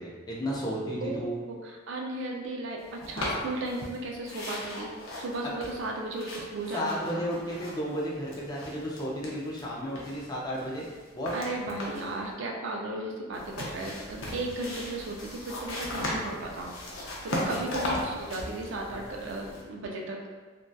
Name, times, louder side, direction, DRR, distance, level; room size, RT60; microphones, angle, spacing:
voice 1, 0.0-1.4 5.4-5.5 6.7-10.9 11.1-11.4 17.5-17.8, equal, 20° left, -4 dB, 0.4 m, -33 dB
voice 2, 1.5-4.9 5.1-7.3 11.3-16.8 17.2-20.2, right 2 dB, 60° right, 0 dB, 0.4 m, -35 dB
sound 1, 3.0-4.0 4.2-9.6 10.0-12.2 13.3-19.6, left 1 dB, 80° left, 0.5 m, -37 dB
2.6 x 2.2 x 2.2 m, 1.4 s
head